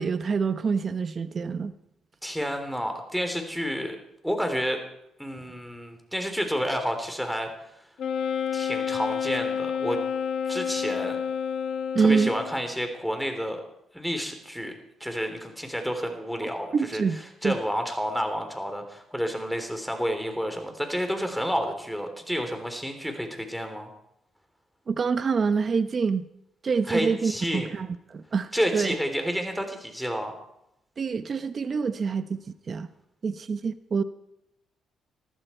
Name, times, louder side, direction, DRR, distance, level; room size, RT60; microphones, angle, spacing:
voice 1, 0.0-1.7 11.9-12.3 16.7-17.6 24.9-26.2 26.6-28.9 31.0-32.4 32.7-32.9 33.2-34.0, right 5 dB, 45° right, 11 dB, 0.9 m, -26 dB
voice 2, 2.2-4.0 4.2-4.8 5.2-7.5 8.5-10.0 10.5-11.2 12.0-13.6 13.9-14.7 15.0-17.0 17.4-23.9 26.9-27.7 28.5-30.4, equal, ahead, 5 dB, 3.6 m, -30 dB
Wind instrument woodwind instrument, 8.0-12.6, left 7 dB, 70° left, 1.2 m, -29 dB
20.5 x 14.5 x 4.5 m, 0.80 s
cardioid pair, 90°, 0 cm